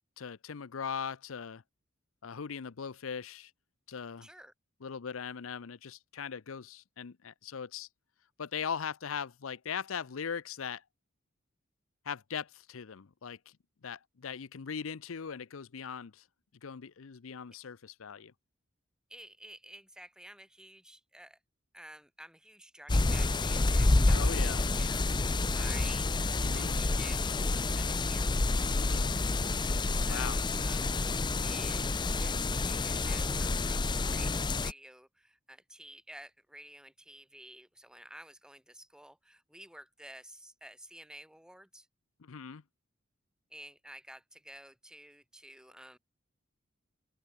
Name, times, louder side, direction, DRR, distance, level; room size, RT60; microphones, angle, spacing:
voice 1, 0.2-1.6 2.2-3.5 3.9-4.3 4.8-7.9 8.4-10.8 12.1-13.4 13.8-16.2 16.6-18.3 24.1-24.7 26.4-26.8 28.8-29.1 30.1-30.4 42.2-42.6, left 7 dB, 80° left, 0.6 m, -39 dB
voice 2, 4.2-4.5 19.1-21.4 21.7-26.1 26.4-28.5 29.9-30.9 31.4-31.9 32.2-33.8 34.1-34.4 34.6-41.9 43.5-46.0, right 1 dB, 5° right, 6.0 m, -52 dB
sound 1, 22.9-34.7, left 2 dB, 20° left, 0.6 m, -29 dB
head